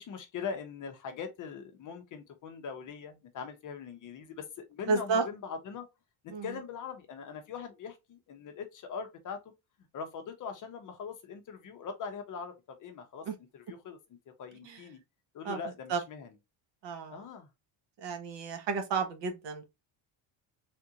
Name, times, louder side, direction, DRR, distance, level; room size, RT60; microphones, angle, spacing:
voice 1, 0.0-5.8 6.2-9.4 9.9-13.3 13.5-14.0 14.4-15.0 15.3-16.3 17.1-17.5, left 6 dB, 40° left, 0.7 m, -41 dB
voice 2, 4.9-5.2 6.3-6.5 13.3-13.4 14.6-14.8 15.4-15.6 15.9-16.0 16.8-17.3 18.0-19.6, right 4 dB, 60° right, 0.9 m, -31 dB
3.6 x 2.4 x 2.7 m
cardioid pair, 180°, 48 cm